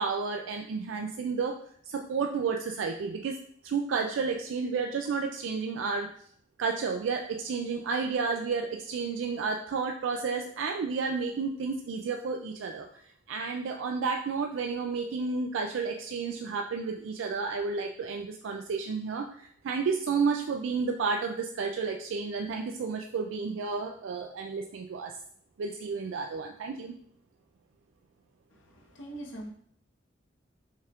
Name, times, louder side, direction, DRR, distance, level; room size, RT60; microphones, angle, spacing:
voice 1, 0.0-1.6 1.9-3.4 3.6-6.1 6.6-13.0 13.3-25.2 25.6-27.0, right 5 dB, 85° right, 2 dB, 0.3 m, -31 dB
voice 2, 28.5-29.5, right 1 dB, 85° left, 0 dB, 1.0 m, -42 dB
5.3 x 2.4 x 3.4 m, 0.63 s
head